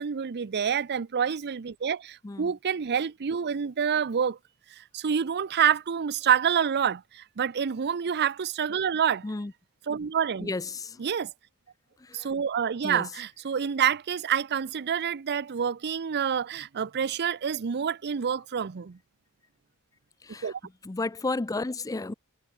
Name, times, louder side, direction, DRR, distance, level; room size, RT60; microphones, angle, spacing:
voice 1, 0.0-4.4 4.8-9.2 9.9-10.5 11.0-11.3 12.1-19.0 20.4-20.6, right 8 dB, 50° right, 0.5 m, -27 dB
voice 2, 10.4-11.0 12.0-12.3 12.8-13.0 20.2-20.5 20.8-22.1, left 3 dB, 15° left, 0.4 m, -32 dB
head